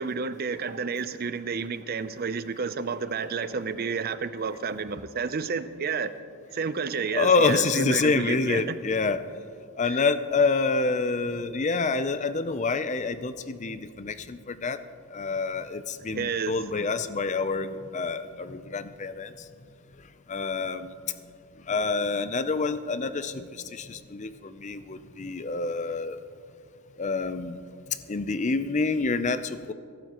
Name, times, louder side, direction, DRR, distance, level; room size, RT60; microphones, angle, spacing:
voice 1, 0.0-6.1 6.5-8.7 16.1-16.5, right 5 dB, 45° right, 12 dB, 0.5 m, -30 dB
voice 2, 7.1-9.2 9.8-14.8 15.1-19.5 20.3-20.9 21.7-26.2 27.0-27.6 27.9-29.7, left 4 dB, 30° left, 12 dB, 0.5 m, -27 dB
23.0 x 12.0 x 3.0 m, 2.4 s
head